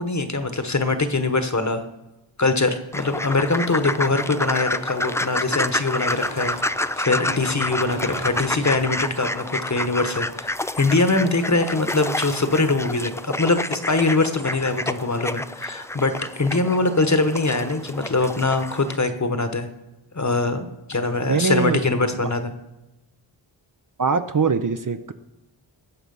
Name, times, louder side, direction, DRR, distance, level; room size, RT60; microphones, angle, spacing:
voice 1, 0.0-1.8 2.4-6.5 7.0-19.7 20.1-22.5, left 3 dB, 35° left, 8 dB, 1.2 m, -23 dB
sound 1, 2.9-19.0, left 1 dB, 5° left, 0.4 m, -29 dB
sound 2, 4.7-9.7, right 1 dB, 80° right, 5.1 m, -41 dB
voice 2, 21.3-21.8 24.0-25.1, right 5 dB, 40° right, 9 dB, 0.7 m, -22 dB
19.5 x 7.1 x 5.4 m, 1.0 s
wide cardioid pair, 55°, 48 cm